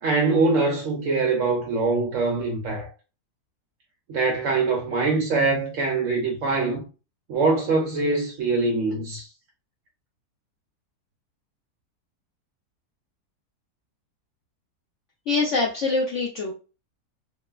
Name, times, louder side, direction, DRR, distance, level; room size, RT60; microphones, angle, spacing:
voice 1, 0.0-2.9 4.1-6.8 7.3-9.3, right 3 dB, 65° right, 0.8 m, -23 dB
voice 2, 15.3-16.5, left 3 dB, 75° left, 0.6 m, -24 dB
3.0 x 2.1 x 2.3 m
omnidirectional pair, 1.8 m